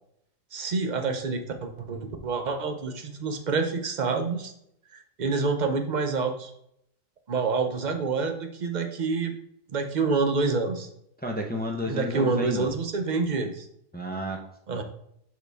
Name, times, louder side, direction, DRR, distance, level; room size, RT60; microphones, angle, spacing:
voice 1, 0.5-4.5 4.9-6.5 7.3-9.3 9.7-10.9 11.9-13.7 14.7-14.8, right 4 dB, 45° right, 5 dB, 0.8 m, -27 dB
voice 2, 11.2-12.7 13.9-14.4 14.7-14.8, equal, 10° left, 1 dB, 0.7 m, -31 dB
6.4 x 5.0 x 3.5 m, 0.74 s
omnidirectional pair, 1.2 m